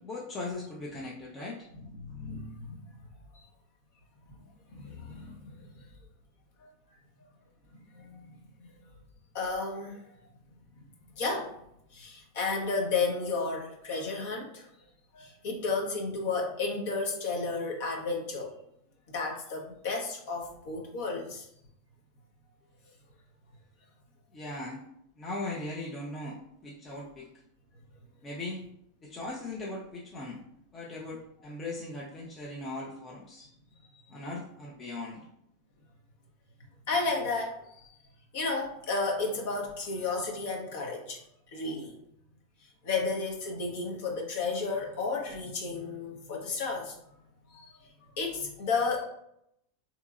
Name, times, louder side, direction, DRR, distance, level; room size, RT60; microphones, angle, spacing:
voice 1, 0.0-1.7 24.3-24.8 25.2-27.3 28.2-28.6 29.0-30.4 30.7-33.5 34.1-35.2, left 2 dB, 30° left, -4 dB, 0.7 m, -39 dB
voice 2, 2.0-2.8 4.7-5.8 6.6-6.7 7.7-8.7 9.3-10.1 11.2-11.5 11.9-14.7 15.1-18.5 19.1-21.5 33.9-34.1 36.9-37.9 38.3-41.2 41.5-41.9 42.8-46.9 47.5-49.1, left 4 dB, 60° left, 1 dB, 1.0 m, -33 dB
3.7 x 2.9 x 2.4 m, 0.76 s
hypercardioid pair, 95°, 0 cm